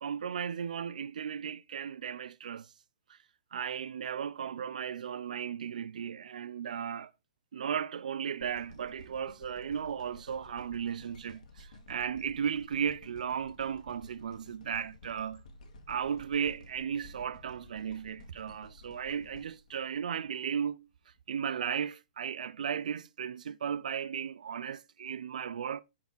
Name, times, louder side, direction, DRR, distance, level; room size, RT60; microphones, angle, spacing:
voice 1, 0.0-2.7 3.1-3.2 3.5-7.1 7.5-15.4 15.9-20.9 21.3-25.8, right 8 dB, 75° right, 0.4 m, -35 dB
sound 1, 8.4-20.6 21.2-21.3, left 1 dB, 65° left, 1.6 m, -53 dB
7.1 x 4.7 x 3.9 m
hypercardioid pair, 175°, 4 cm